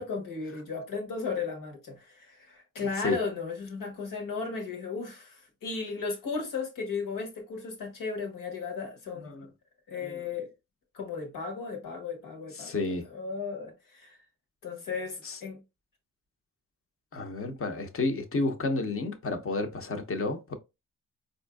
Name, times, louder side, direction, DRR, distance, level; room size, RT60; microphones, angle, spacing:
voice 1, 0.0-9.3 9.9-10.5 10.9-12.8 13.1-14.2 14.6-15.6, left 4 dB, 90° left, 1.3 m, -35 dB
voice 2, 9.9-10.2 12.6-13.0 15.2-15.4 17.1-20.5, left 3 dB, 45° left, 0.8 m, -31 dB
4.3 x 2.6 x 2.2 m
cardioid pair, 70°, 32 cm